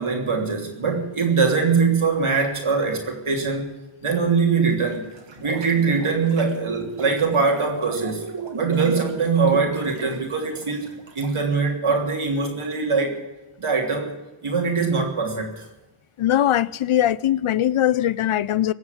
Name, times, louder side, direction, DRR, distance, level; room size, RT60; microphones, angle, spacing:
voice 1, 0.0-3.7 4.0-5.1 5.4-8.3 8.6-10.9 11.1-13.2 13.6-14.2 14.4-15.7, right 4 dB, 80° right, 3.2 m, -22 dB
sound 1, 4.7-11.4, right 4 dB, 60° right, 2.1 m, -36 dB
voice 2, 16.2-18.7, left 12 dB, 85° left, 0.6 m, -21 dB
19.0 x 7.3 x 9.9 m
cardioid pair, 45°, 49 cm